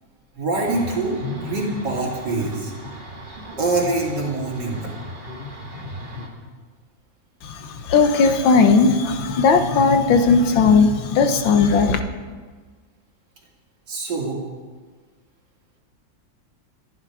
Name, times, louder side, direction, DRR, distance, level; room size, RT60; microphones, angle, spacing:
voice 1, 0.4-2.7 3.6-4.9 13.9-14.4, right 2 dB, 60° right, -2 dB, 3.6 m, -24 dB
sound 1, 0.5-6.3, left 1 dB, 25° right, 2.0 m, -36 dB
voice 2, 7.4-12.0, left 4 dB, 80° left, 7 dB, 1.9 m, -17 dB
26.0 x 10.5 x 5.0 m, 1.5 s
omnidirectional pair, 2.1 m